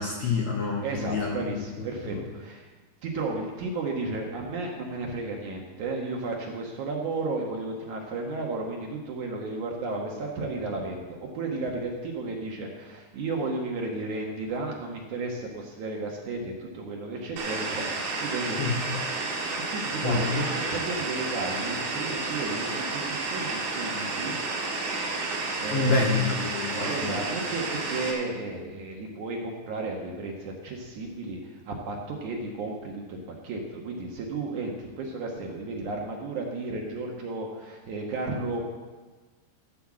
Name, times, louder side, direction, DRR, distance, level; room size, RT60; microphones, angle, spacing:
voice 1, 0.0-1.3 18.6-18.8 20.0-20.2 25.7-27.2, left 4 dB, 60° left, -1 dB, 2.0 m, -27 dB
voice 2, 0.8-2.7 3.0-19.0 19.3-24.4 25.3-26.2 26.6-38.7, right 3 dB, 60° right, 0 dB, 2.4 m, -33 dB
sound 1, 17.4-28.1, right 3 dB, 85° right, 4.1 m, -31 dB
15.5 x 5.7 x 7.5 m, 1.3 s
omnidirectional pair, 4.5 m